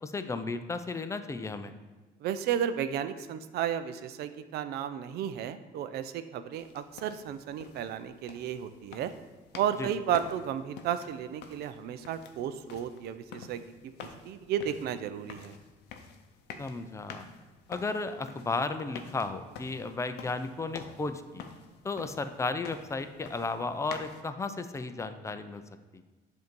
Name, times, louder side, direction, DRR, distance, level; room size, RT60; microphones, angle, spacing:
voice 1, 0.0-1.7 9.8-9.9 16.6-17.2 17.7-21.4 21.8-25.6 25.9-26.0, left 3 dB, 15° left, 9 dB, 0.4 m, -34 dB
voice 2, 2.2-9.1 9.5-13.7 14.0-15.6, right 9 dB, 75° right, 11 dB, 0.4 m, -33 dB
sound 1, 6.5-24.2, left 6 dB, 80° left, 0.6 m, -49 dB
7.8 x 2.7 x 5.2 m, 1.2 s
cardioid pair, 110°, 17 cm